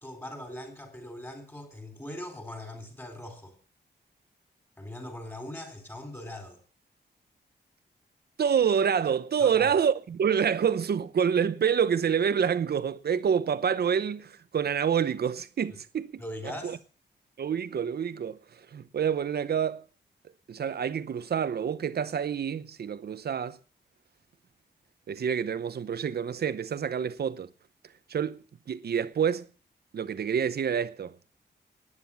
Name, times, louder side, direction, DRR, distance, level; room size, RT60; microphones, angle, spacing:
voice 1, 0.0-3.6 4.8-6.6 9.4-9.7 16.2-16.8, left 1 dB, 15° left, 4.1 m, -41 dB
voice 2, 8.4-16.2 16.6-16.8 17.4-19.8 20.5-23.6 25.1-27.5 28.1-29.5 29.9-31.2, right 7 dB, 65° right, 0.9 m, -27 dB
14.5 x 10.0 x 7.1 m
wide cardioid pair, 160°, 18 cm